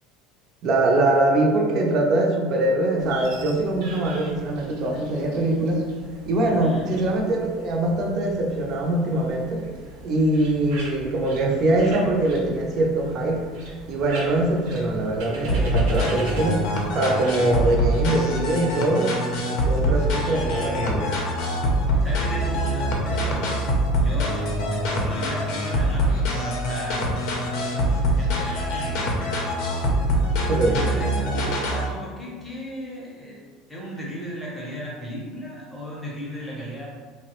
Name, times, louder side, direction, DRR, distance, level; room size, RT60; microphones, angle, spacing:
voice 1, 0.6-5.9 6.3-9.6 10.0-13.4 13.8-16.6 16.9-19.2 19.5-21.1 30.5-30.8, right 2 dB, 40° right, 0 dB, 0.5 m, -22 dB
sound 1, 3.0-17.7, right 1 dB, 75° right, 0.7 m, -42 dB
voice 2, 6.5-6.9 22.0-23.6 24.0-27.0 27.5-29.1 30.7-33.4 33.7-36.9, equal, 10° left, -5 dB, 0.7 m, -36 dB
sound 2, 15.5-31.9, equal, 55° left, 0.5 m, -24 dB
3.2 x 2.0 x 2.9 m, 1.5 s
cardioid pair, 165°, 0 cm